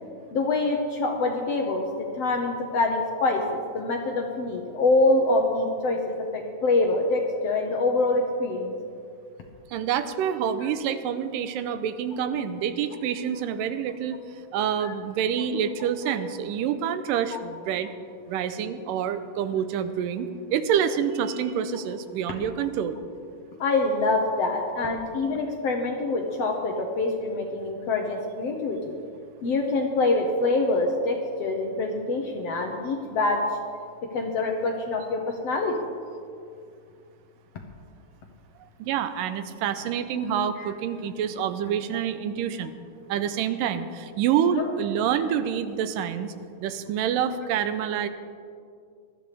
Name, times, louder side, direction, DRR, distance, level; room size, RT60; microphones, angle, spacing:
voice 1, 0.3-1.9 2.1-8.7 17.3-17.4 23.6-29.0 29.4-33.4 34.1-35.8 40.6-40.7, left 2 dB, 70° left, 2 dB, 1.6 m, -25 dB
voice 2, 9.7-14.2 14.5-17.9 18.3-23.0 38.8-42.7 43.1-46.3 46.6-48.1, right 8 dB, 85° right, 11 dB, 2.3 m, -27 dB
19.5 x 13.0 x 3.4 m, 2.4 s
omnidirectional pair, 3.8 m